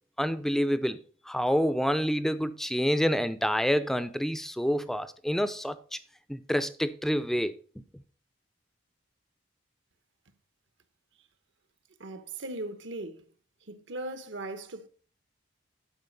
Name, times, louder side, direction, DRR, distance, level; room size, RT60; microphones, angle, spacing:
voice 1, 0.2-6.0 6.3-7.5, equal, ahead, 0.5 m, -28 dB
voice 2, 12.0-13.2 13.7-14.9, right 2 dB, 65° right, 1.0 m, -38 dB
11.0 x 5.0 x 5.3 m
head